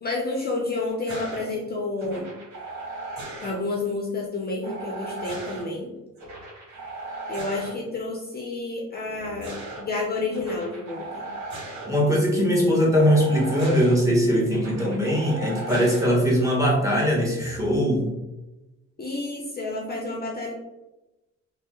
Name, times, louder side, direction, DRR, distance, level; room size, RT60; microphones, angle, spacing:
voice 1, 0.0-2.3 3.4-5.9 7.3-11.3 19.0-20.5, left 3 dB, 30° left, -1 dB, 0.6 m, -30 dB
sound 1, 1.1-1.4 2.0-3.5 4.6-5.6 6.2-7.7 9.0-9.8 10.3-11.9 13.0-14.0 14.5-16.1 17.4-17.8, right 2 dB, 65° right, 1.4 m, -37 dB
voice 2, 11.8-18.1, equal, 10° right, -3 dB, 1.0 m, -21 dB
3.2 x 2.1 x 2.9 m, 1.0 s
cardioid pair, 90°, 30 cm